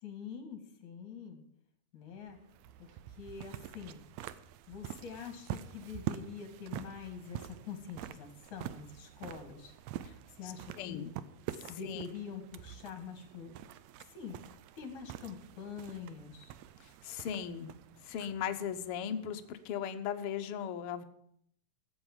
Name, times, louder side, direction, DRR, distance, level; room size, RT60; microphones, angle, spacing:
voice 1, 0.0-1.4 1.9-2.4 2.8-4.0 4.7-9.7 10.3-11.1 11.7-13.6 14.0-16.5, left 6 dB, 65° left, 6 dB, 3.4 m, -45 dB
sound 1, 2.2-19.8, right 12 dB, 80° right, 1.7 m, -46 dB
voice 2, 10.4-11.1 11.6-12.1 16.8-17.7 18.0-21.0, left 8 dB, 85° left, 7 dB, 1.2 m, -38 dB
13.5 x 8.1 x 7.2 m, 0.69 s
omnidirectional pair, 3.8 m